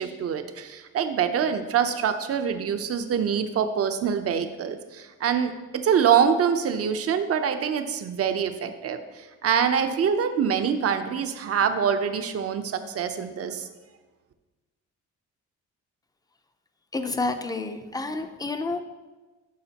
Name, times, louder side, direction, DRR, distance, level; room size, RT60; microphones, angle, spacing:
voice 1, 0.0-13.7, right 7 dB, 50° right, 8 dB, 0.7 m, -25 dB
voice 2, 16.9-18.8, left 3 dB, 15° left, 7 dB, 0.6 m, -29 dB
11.0 x 5.0 x 2.9 m, 1.2 s
cardioid pair, 90°, 30 cm